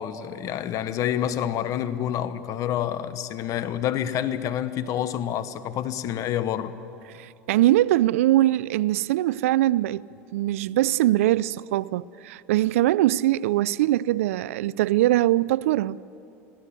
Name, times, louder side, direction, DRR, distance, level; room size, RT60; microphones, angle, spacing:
voice 1, 0.0-6.7, left 10 dB, 50° left, 1.1 m, -28 dB
voice 2, 7.2-10.1 10.3-16.0, right 15 dB, 80° right, 0.4 m, -22 dB
21.0 x 16.0 x 8.5 m
hypercardioid pair, 95°, 7 cm